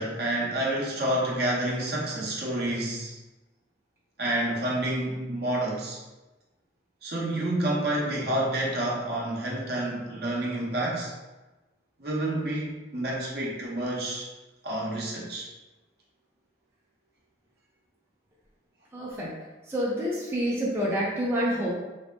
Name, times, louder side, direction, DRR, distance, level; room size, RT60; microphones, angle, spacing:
voice 1, 0.0-3.2 4.2-6.0 7.0-11.1 12.0-14.3 14.6-15.5, right 1 dB, 60° right, -4 dB, 0.7 m, -29 dB
voice 2, 18.9-19.3 19.7-21.7, equal, 15° right, -7 dB, 0.5 m, -28 dB
3.3 x 2.6 x 2.2 m, 1.1 s
head